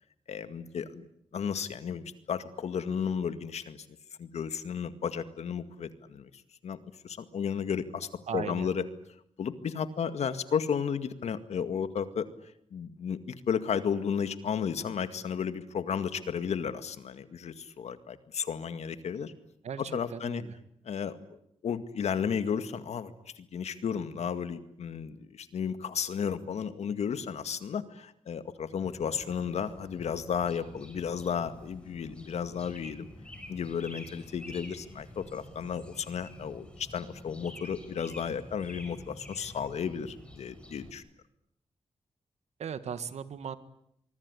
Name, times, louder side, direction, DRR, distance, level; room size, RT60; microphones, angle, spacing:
voice 1, 0.3-1.0 1.3-3.9 4.2-6.3 6.6-6.8 7.0-8.8 9.4-12.3 12.7-19.3 19.8-20.4 20.8-21.2 21.6-33.1 33.5-41.0, left 7 dB, 85° left, 11 dB, 2.0 m, -33 dB
voice 2, 8.3-8.7 19.6-19.8 20.1-20.6 42.6-43.6, right 7 dB, 90° right, 13 dB, 1.9 m, -37 dB
sound 1, 28.8-40.9, left 1 dB, 10° left, 6.2 m, -49 dB
25.0 x 23.5 x 10.0 m, 0.74 s
wide cardioid pair, 115°, 11 cm